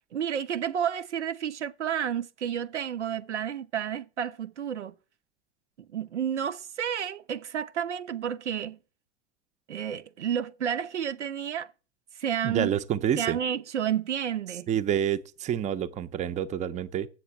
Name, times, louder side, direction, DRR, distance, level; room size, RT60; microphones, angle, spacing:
voice 1, 0.1-4.9 5.8-8.8 9.7-11.7 12.2-12.7 13.2-14.7, right 9 dB, 85° right, 0.6 m, -31 dB
voice 2, 12.4-13.4 14.7-17.1, right 9 dB, 20° right, 0.6 m, -28 dB
7.9 x 7.3 x 6.7 m
figure-of-eight pair, 90°, 34 cm